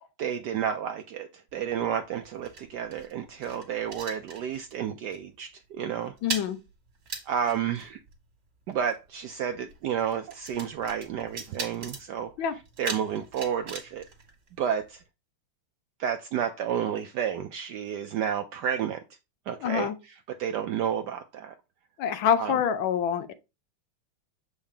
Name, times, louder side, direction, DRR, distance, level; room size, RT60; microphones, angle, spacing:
voice 1, 0.2-6.1 7.3-8.0 8.7-12.3 12.8-14.0 14.6-15.0 16.0-19.0 19.5-19.9 20.4-21.5 22.4-22.5, right 8 dB, 75° right, 1.0 m, -31 dB
sound 1, 1.5-4.8 5.1-5.4 5.6-15.0, right 4 dB, 45° right, 2.0 m, -41 dB
voice 2, 6.2-6.6 12.4-12.6 19.6-20.0 22.0-23.3, left 8 dB, 75° left, 1.4 m, -26 dB
7.1 x 4.8 x 3.3 m
omnidirectional pair, 2.3 m